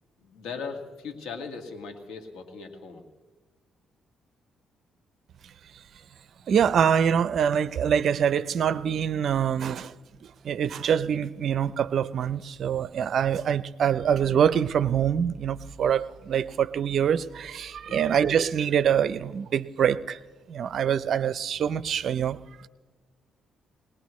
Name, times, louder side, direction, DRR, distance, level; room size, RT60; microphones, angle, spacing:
voice 1, 0.2-3.0 17.9-18.2, left 5 dB, 90° left, 1.9 m, -39 dB
voice 2, 6.5-9.9 10.4-20.2 20.5-22.4, right 8 dB, 60° right, 0.6 m, -25 dB
21.5 x 19.0 x 3.2 m
cardioid pair, 90°, 0 cm